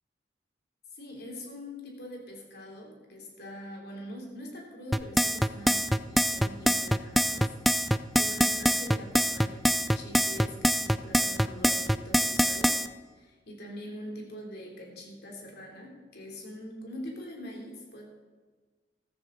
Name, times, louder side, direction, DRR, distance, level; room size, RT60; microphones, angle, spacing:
voice 1, 0.9-12.8 13.1-18.0, left 1 dB, 60° left, -1 dB, 3.2 m, -43 dB
sound 1, 4.9-12.9, equal, ahead, 0.3 m, -24 dB
14.5 x 14.0 x 4.0 m, 1.4 s
head